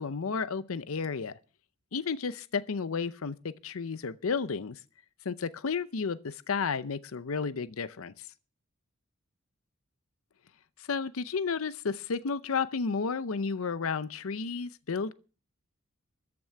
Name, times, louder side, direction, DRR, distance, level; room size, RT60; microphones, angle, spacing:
voice 1, 0.0-1.3 1.9-4.8 5.2-8.1 10.9-15.1, left 5 dB, 85° left, 0.6 m, -32 dB
14.0 x 6.0 x 8.5 m
head